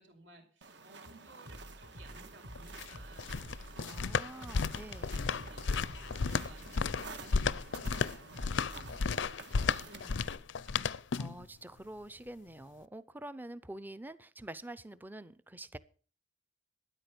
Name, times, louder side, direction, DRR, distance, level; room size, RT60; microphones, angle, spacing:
voice 1, 0.0-3.8 5.1-10.9, right 2 dB, 85° right, 4 dB, 5.1 m, -58 dB
sound 1, 0.6-10.4, right 4 dB, 65° right, 1.6 m, -51 dB
sound 2, 1.5-9.2, equal, 45° right, 1.5 m, -50 dB
sound 3, 2.6-11.4, left 5 dB, 75° left, 0.5 m, -33 dB
voice 2, 3.8-5.2 11.2-15.8, right 1 dB, 10° right, 15 dB, 0.6 m, -46 dB
13.0 x 9.8 x 6.9 m, 0.42 s
head